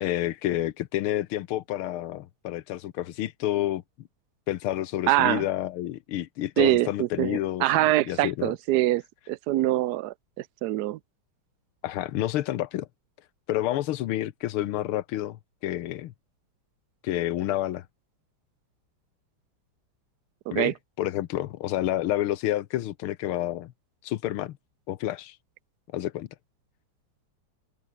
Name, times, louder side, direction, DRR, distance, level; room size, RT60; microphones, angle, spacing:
voice 1, 0.0-3.8 4.5-7.7 8.1-8.5 11.8-12.9 13.5-16.1 17.0-17.9 20.5-23.7 24.0-24.6 24.9-25.4 25.9-26.3, left 13 dB, 90° left, 1.7 m, -29 dB
voice 2, 5.1-5.4 6.6-9.0 9.3-10.1 10.6-11.0 20.5-20.7, right 15 dB, 80° right, 0.9 m, -24 dB
open air
omnidirectional pair, 2.3 m